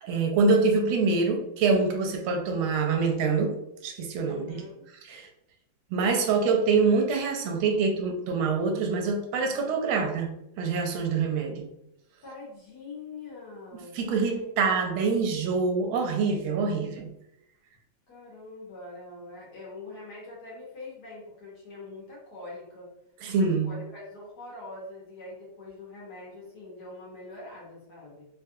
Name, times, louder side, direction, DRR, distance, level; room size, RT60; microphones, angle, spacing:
voice 1, 0.0-3.5 3.8-4.6 5.1-5.3 5.9-11.7 13.9-17.1 23.2-23.7, right 4 dB, 85° right, 4 dB, 1.4 m, -25 dB
voice 2, 4.2-4.8 12.2-14.6 18.1-22.9 23.3-28.3, left 2 dB, 60° left, -5 dB, 1.4 m, -44 dB
3.5 x 2.3 x 2.6 m, 0.81 s
omnidirectional pair, 2.2 m